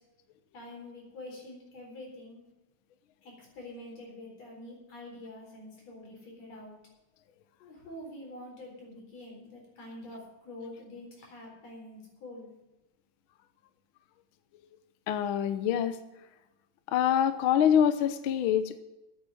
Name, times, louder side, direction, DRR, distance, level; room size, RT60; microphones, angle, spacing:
voice 1, 0.5-2.4 3.2-6.8 7.6-12.5, left 1 dB, 60° left, -1 dB, 5.3 m, -46 dB
voice 2, 15.1-16.0 16.9-18.8, left 9 dB, 75° left, 10 dB, 1.2 m, -25 dB
9.5 x 8.7 x 9.5 m, 0.99 s
omnidirectional pair, 3.3 m